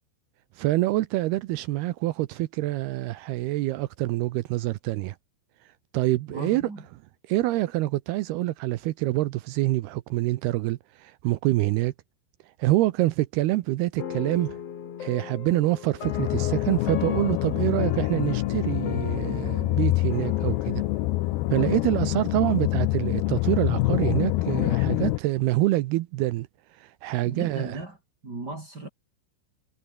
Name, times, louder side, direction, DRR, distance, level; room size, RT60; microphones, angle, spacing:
voice 1, 0.6-5.2 5.9-6.6 7.3-11.9 12.6-14.6 15.0-20.8 21.5-26.5 26.8-27.8, right 17 dB, 85° right, 2.3 m, -26 dB
voice 2, 6.3-6.8 27.2-28.0 28.2-28.9, right 3 dB, 25° right, 3.7 m, -36 dB
sound 1, 14.0-23.1, left 8 dB, 55° left, 1.9 m, -37 dB
sound 2, 16.0-25.2, left 19 dB, 90° left, 2.2 m, -26 dB
omnidirectional pair, 5.4 m